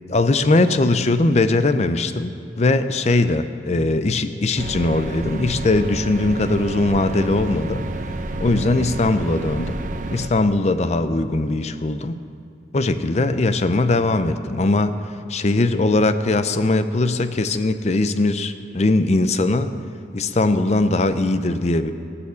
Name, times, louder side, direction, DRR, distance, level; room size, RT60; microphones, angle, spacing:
voice 1, 0.1-7.8 8.4-9.8 10.1-12.2 12.7-14.9 15.3-19.8 20.1-21.9, left 2 dB, 40° left, 11 dB, 0.5 m, -20 dB
sound 1, 4.6-10.3, right 2 dB, 45° right, 0.7 m, -30 dB
17.5 x 7.0 x 6.9 m, 2.6 s
head